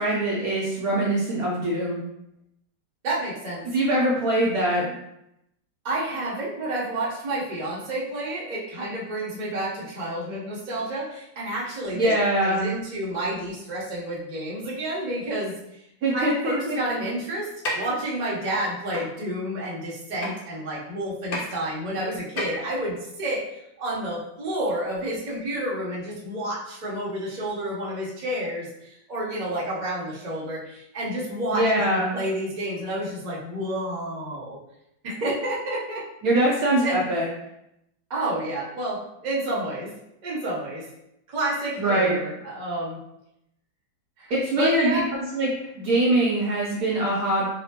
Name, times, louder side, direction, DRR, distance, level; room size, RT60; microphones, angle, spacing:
voice 1, 0.0-2.0 3.7-4.9 11.9-12.7 16.0-16.8 31.5-32.2 36.2-37.3 41.8-42.2 44.3-45.5 45.8-47.5, right 1 dB, 65° right, -4 dB, 0.9 m, -23 dB
voice 2, 3.0-3.6 5.8-12.1 12.4-15.5 16.1-34.6 35.0-36.1 36.8-37.0 38.1-39.9 40.2-40.8 41.3-43.0 44.2-45.1, right 1 dB, 40° right, -6 dB, 0.6 m, -30 dB
sound 1, 17.6-17.7 18.9-19.0 20.2-20.3 21.3-21.4 22.4-22.7, left 1 dB, 75° left, 0.5 m, -29 dB
4.1 x 2.1 x 2.8 m, 0.81 s
omnidirectional pair, 2.0 m